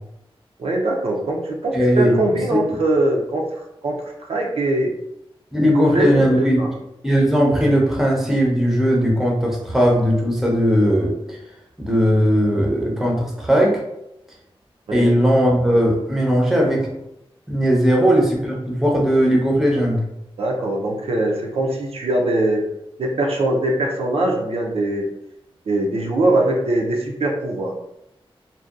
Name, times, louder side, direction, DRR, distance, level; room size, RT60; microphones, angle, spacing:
voice 1, 0.6-3.4 3.8-4.9 5.6-6.7 14.9-15.1 20.4-22.6 23.0-25.1 25.7-27.7, right 1 dB, 85° right, 0 dB, 0.5 m, -22 dB
voice 2, 1.7-2.2 2.5-2.6 5.5-6.6 7.0-11.4 11.8-13.8 14.9-16.9 17.5-20.0, equal, 5° right, -1 dB, 0.6 m, -18 dB
2.6 x 2.1 x 2.3 m, 0.84 s
wide cardioid pair, 100°, 10 cm